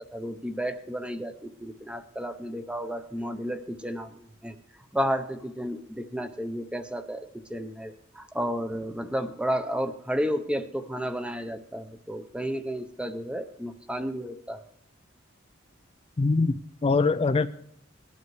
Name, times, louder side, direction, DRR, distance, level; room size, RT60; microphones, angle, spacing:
voice 1, 0.0-4.5 4.9-14.6, equal, 5° right, 9 dB, 0.7 m, -32 dB
voice 2, 16.2-17.5, left 3 dB, 30° left, 10 dB, 0.3 m, -23 dB
20.0 x 11.0 x 3.1 m, 0.74 s
head